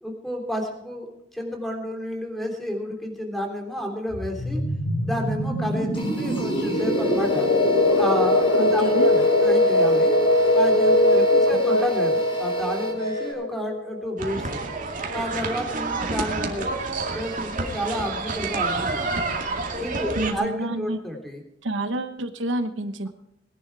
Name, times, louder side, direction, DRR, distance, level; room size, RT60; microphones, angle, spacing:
voice 1, 0.0-4.6 5.0-7.5 7.9-10.1 10.5-14.6 15.1-16.7 17.1-19.2 19.8-21.4, equal, ahead, 2 dB, 3.3 m, -31 dB
sound 1, 4.1-14.6, left 1 dB, 75° left, 3.4 m, -21 dB
sound 2, 5.9-13.3, equal, 30° left, 5.0 m, -40 dB
voice 2, 8.6-9.1 11.5-11.8 20.2-21.0 21.6-23.1, right 1 dB, 75° right, 9 dB, 1.1 m, -29 dB
sound 3, 14.2-20.3, right 3 dB, 45° right, 2.2 m, -29 dB
20.5 x 11.0 x 4.8 m, 0.80 s
head